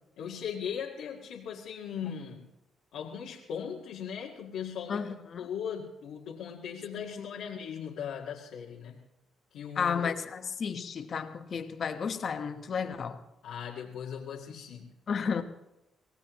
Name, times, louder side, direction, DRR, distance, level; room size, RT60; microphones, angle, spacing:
voice 1, 0.2-2.5 2.9-5.1 5.4-9.0 9.5-10.1 13.4-14.9, left 8 dB, 85° left, 1.8 m, -38 dB
voice 2, 4.9-5.5 7.2-7.3 9.8-13.2 15.1-15.4, left 6 dB, 50° left, 1.3 m, -32 dB
24.5 x 17.5 x 3.1 m
cardioid pair, 90°, 0 cm